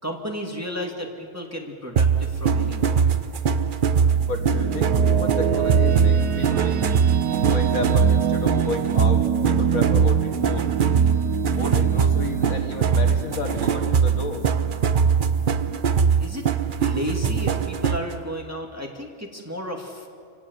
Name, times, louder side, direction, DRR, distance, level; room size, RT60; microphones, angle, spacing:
voice 1, 0.0-3.0 15.7-16.5 16.8-20.1, equal, 10° right, 0 dB, 2.3 m, -33 dB
sound 1, 2.0-18.1, right 6 dB, 45° right, 0.7 m, -21 dB
sound 2, 4.1-15.2, right 10 dB, 90° right, 1.4 m, -27 dB
voice 2, 4.2-7.0 7.5-10.7 11.5-14.4, left 4 dB, 65° left, 4 dB, 2.1 m, -32 dB
28.0 x 16.5 x 8.1 m, 2.3 s
omnidirectional pair, 1.6 m